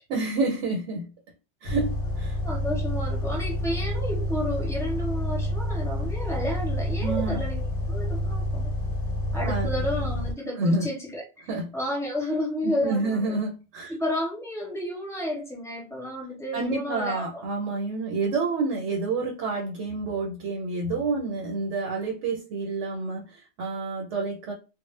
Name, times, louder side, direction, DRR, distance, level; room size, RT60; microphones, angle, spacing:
voice 1, 0.1-1.1 1.6-2.4 7.0-7.4 9.4-9.7 10.6-10.9 11.5-11.7 12.6-13.9 16.5-24.5, right 3 dB, 85° right, 0.9 m, -28 dB
sound 1, 1.7-10.3, left 1 dB, 80° left, 0.9 m, -28 dB
voice 2, 2.4-8.7 9.3-11.2 11.7-13.4 13.9-17.4, left 1 dB, 5° left, 0.7 m, -31 dB
2.0 x 2.0 x 3.1 m
omnidirectional pair, 1.2 m